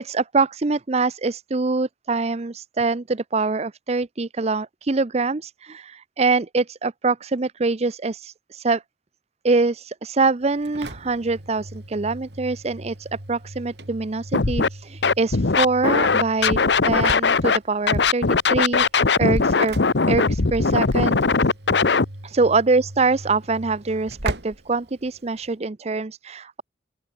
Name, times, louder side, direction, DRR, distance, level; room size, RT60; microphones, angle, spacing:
voice 1, 0.0-8.8 9.4-16.6 16.8-19.8 20.1-21.2 22.2-26.6, right 3 dB, 35° right, 0.6 m, -24 dB
Engine / Slam, 10.4-25.6, right 1 dB, 70° right, 3.5 m, -38 dB
Scratching (performance technique), 14.3-14.7 15.0-17.6 17.9-22.1, left 4 dB, 80° left, 1.0 m, -19 dB
open air
head